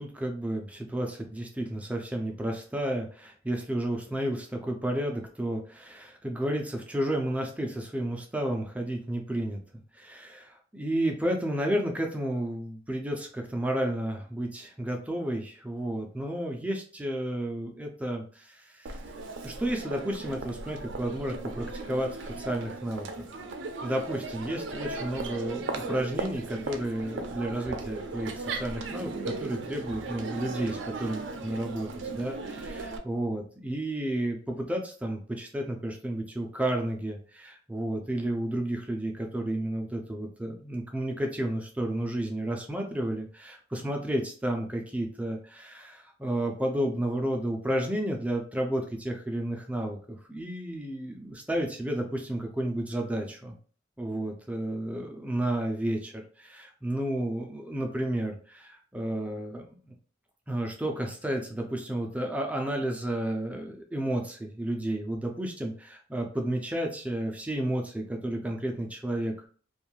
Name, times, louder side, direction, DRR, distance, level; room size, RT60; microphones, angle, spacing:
voice 1, 0.0-9.6 9.9-19.0 19.4-23.3 23.8-31.9 32.1-53.6 54.0-59.9 60.5-69.5, right 1 dB, 5° right, 2 dB, 0.4 m, -32 dB
Crowd, 18.9-33.0, right 3 dB, 70° right, 0.4 m, -37 dB
2.5 x 2.3 x 3.0 m, 0.43 s
head